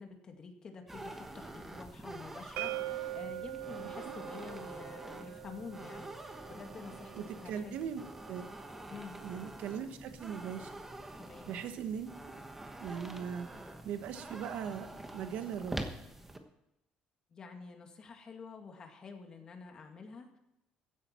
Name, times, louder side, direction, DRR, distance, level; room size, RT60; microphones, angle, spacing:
voice 1, 0.0-7.1 7.4-7.8 8.9-9.2 11.2-11.5 17.3-20.4, left 5 dB, 30° left, 4 dB, 2.0 m, -48 dB
sound 1, 0.9-16.4, right 1 dB, 10° right, 1.2 m, -46 dB
sound 2, 2.6-8.4, right 16 dB, 90° right, 0.4 m, -43 dB
voice 2, 7.1-8.5 9.2-10.7 11.5-12.3 12.8-13.5 13.8-15.9, right 8 dB, 65° right, 9 dB, 1.3 m, -39 dB
15.5 x 11.0 x 4.4 m, 0.90 s
cardioid pair, 165°, 3 cm